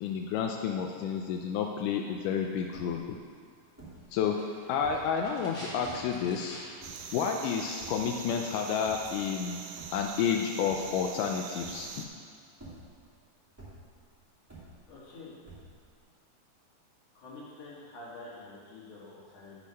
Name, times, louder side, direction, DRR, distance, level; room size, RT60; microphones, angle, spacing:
voice 1, 0.0-3.2 4.1-4.4 4.7-6.6 7.1-9.6 9.9-11.9, left 7 dB, 80° left, 3 dB, 1.9 m, -30 dB
sound 1, 2.7-3.2 3.8-4.2 4.7-5.2 5.8-6.2 6.8-7.4 7.8-8.3 8.8-9.2 9.7-10.4 10.7-11.2 11.6-12.1 12.5-13.1 13.6-14.1 14.5-15.1 15.4-16.0, right 2 dB, 5° right, 1.4 m, -49 dB
sound 2, 4.1-7.0 7.2-7.3, equal, 30° left, 2.5 m, -47 dB
sound 3, 6.8-12.1, right 6 dB, 80° right, 2.3 m, -43 dB
voice 2, 14.9-15.3 17.1-19.6, left 2 dB, 60° left, -7 dB, 3.1 m, -48 dB
8.4 x 6.2 x 5.4 m, 2.2 s
omnidirectional pair, 4.2 m